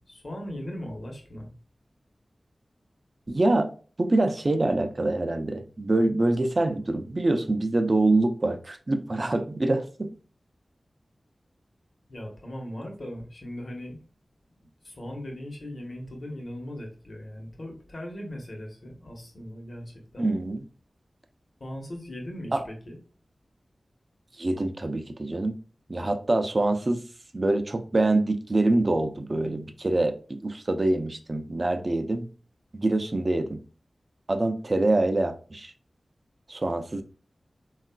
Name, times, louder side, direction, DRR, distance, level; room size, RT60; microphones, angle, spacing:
voice 1, 0.0-1.5 12.1-14.0 14.8-20.3 21.6-23.0, left 1 dB, 60° left, 1 dB, 0.9 m, -39 dB
voice 2, 3.3-3.7 4.0-10.1 20.2-20.6 22.5-22.6 24.4-25.5 25.9-27.0 27.3-32.3 32.7-33.6 34.3-35.7 36.5-37.0, right 2 dB, 45° right, 7 dB, 0.4 m, -25 dB
3.6 x 2.3 x 2.2 m, 0.39 s
wide cardioid pair, 60°, 0 cm